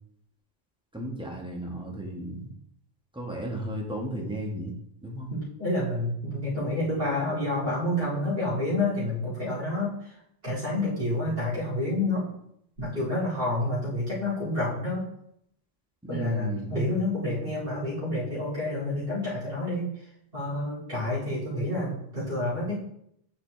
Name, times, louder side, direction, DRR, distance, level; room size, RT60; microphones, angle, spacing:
voice 1, 0.9-2.5 3.1-4.7 5.0-5.3 16.0-16.8, equal, 5° right, -1 dB, 1.1 m, -34 dB
voice 2, 5.3-10.2 10.4-12.3 12.8-15.1 16.1-20.0 20.3-22.7, left 1 dB, 60° right, -11 dB, 2.5 m, -29 dB
8.7 x 4.1 x 3.2 m, 0.75 s
omnidirectional pair, 1.1 m